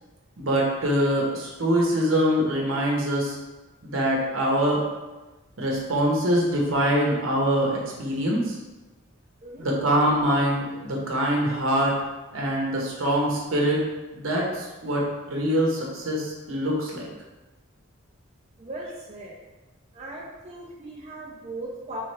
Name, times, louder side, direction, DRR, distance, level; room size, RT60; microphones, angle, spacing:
voice 1, 0.4-3.4 3.8-4.8 5.6-8.6 9.6-13.8 14.1-17.1, equal, 75° right, -2 dB, 0.9 m, -24 dB
voice 2, 18.6-19.4 19.9-22.0, right 1 dB, 30° right, -4 dB, 0.5 m, -38 dB
3.3 x 3.2 x 3.3 m, 1.2 s
head